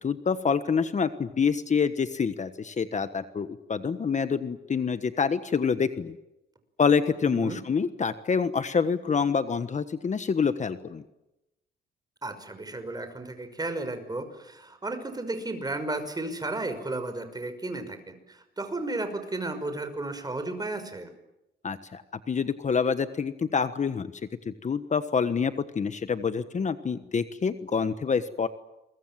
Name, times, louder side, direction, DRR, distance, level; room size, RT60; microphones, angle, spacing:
voice 1, 0.0-6.1 6.8-11.0 21.6-22.0 22.3-24.1 24.4-28.5, left 6 dB, 35° left, 11 dB, 1.3 m, -27 dB
voice 2, 7.3-7.6 12.2-21.1, right 2 dB, 20° right, 9 dB, 5.6 m, -34 dB
29.0 x 23.0 x 7.6 m, 0.91 s
cardioid pair, 90°, 20 cm